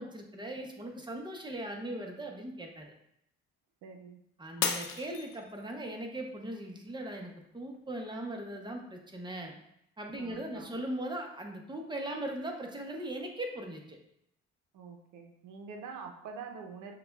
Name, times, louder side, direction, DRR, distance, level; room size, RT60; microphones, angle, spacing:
voice 1, 0.0-2.9 4.4-9.6 10.0-14.0, right 1 dB, 15° right, 2 dB, 0.7 m, -39 dB
voice 2, 3.8-4.2 10.1-10.8 14.7-16.9, right 5 dB, 85° right, 3 dB, 0.6 m, -45 dB
Shatter, 4.6-5.9 6.4-6.9 7.4-7.5, left 7 dB, 70° left, 0.5 m, -34 dB
6.6 x 2.2 x 2.3 m, 0.76 s
cardioid pair, 90°, 30 cm